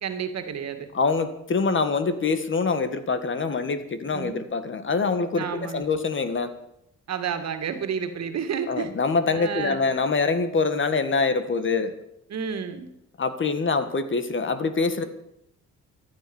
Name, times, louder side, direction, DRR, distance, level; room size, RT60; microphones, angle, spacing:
voice 1, 0.0-0.9 4.1-4.4 5.3-5.8 7.1-8.9 9.3-9.8 12.3-12.9, right 7 dB, 60° right, 8 dB, 2.2 m, -30 dB
voice 2, 0.9-6.5 8.7-11.9 13.2-15.0, left 4 dB, 40° left, 11 dB, 1.7 m, -25 dB
14.0 x 11.0 x 7.2 m, 0.78 s
cardioid pair, 90°, 30 cm